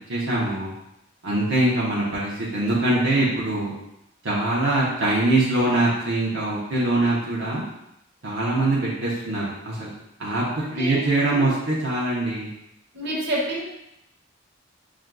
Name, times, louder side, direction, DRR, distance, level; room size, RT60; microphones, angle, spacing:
voice 1, 0.1-0.7 1.2-3.7 4.2-7.6 8.2-9.9 10.2-12.5, right 2 dB, 80° right, -7 dB, 0.9 m, -23 dB
voice 2, 10.5-11.0 11.3-11.5 12.9-13.6, right 1 dB, 60° right, -4 dB, 1.1 m, -28 dB
6.1 x 2.5 x 2.3 m, 0.83 s
head